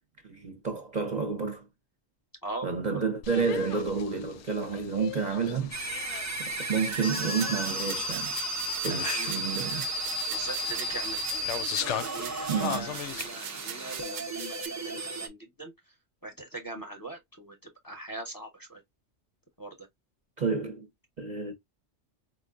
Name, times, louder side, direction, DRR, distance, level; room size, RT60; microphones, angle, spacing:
voice 1, 0.2-1.6 2.6-8.3 8.8-9.9 12.5-12.9 20.4-20.9 21.2-21.5, right 5 dB, 40° right, 0.8 m, -30 dB
voice 2, 2.4-3.0 8.9-9.3 10.3-11.2 11.7-15.7 16.2-17.6 17.8-18.8 19.6-19.7, right 1 dB, 20° left, 0.9 m, -41 dB
sound 1, 3.2-13.3, left 10 dB, 75° left, 0.9 m, -40 dB
sound 2, 5.7-15.3, right 1 dB, 20° right, 0.4 m, -34 dB
sound 3, 6.9-14.7, right 9 dB, 80° right, 1.0 m, -42 dB
4.4 x 2.5 x 2.4 m
omnidirectional pair, 1.2 m